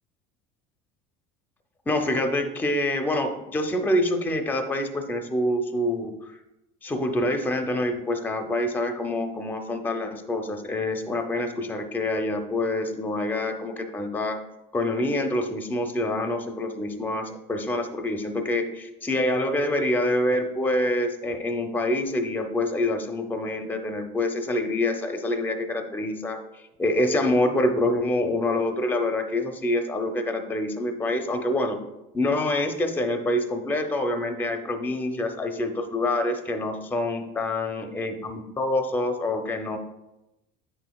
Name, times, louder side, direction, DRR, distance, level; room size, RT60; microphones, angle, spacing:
voice 1, 1.9-6.1 6.8-14.4 14.7-26.4 26.8-31.8 32.1-39.8, left 1 dB, 10° left, 6 dB, 0.5 m, -26 dB
8.9 x 6.2 x 2.3 m, 0.94 s
cardioid pair, 150°, 20 cm